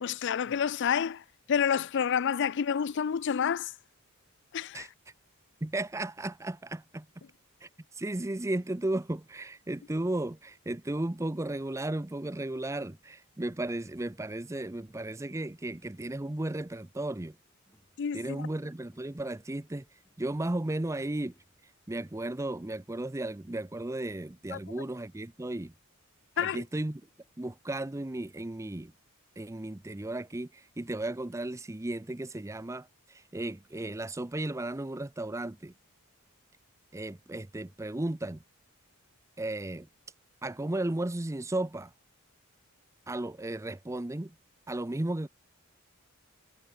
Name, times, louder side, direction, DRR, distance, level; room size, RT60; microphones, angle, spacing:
voice 1, 0.0-3.7 4.5-4.9 18.0-18.5 24.5-24.6 26.4-26.6, left 7 dB, 55° left, 0.4 m, -29 dB
voice 2, 5.6-7.1 7.6-7.7 8.0-17.3 18.1-19.8 20.2-21.3 21.9-25.7 26.4-27.0 27.4-28.9 29.4-35.7 36.9-38.4 39.4-39.9 40.4-41.9 43.1-44.3 44.7-45.3, right 1 dB, 15° right, 0.6 m, -34 dB
sound 1, 15.6-22.3, equal, 10° left, 7.7 m, -70 dB
head